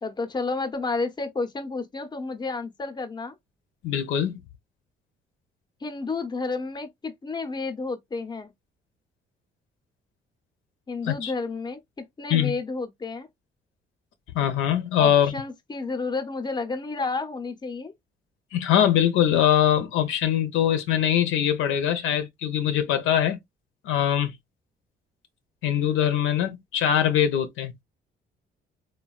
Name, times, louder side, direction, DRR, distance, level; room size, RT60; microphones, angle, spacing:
voice 1, 0.0-3.3 5.8-8.5 10.9-13.3 15.0-17.9, left 3 dB, 20° left, 0.7 m, -31 dB
voice 2, 3.8-4.4 11.0-11.3 12.3-12.5 14.3-15.3 18.5-23.4 23.8-24.3 25.6-27.7, left 10 dB, 85° left, 0.7 m, -22 dB
3.3 x 2.2 x 2.3 m
cardioid pair, 90°, 20 cm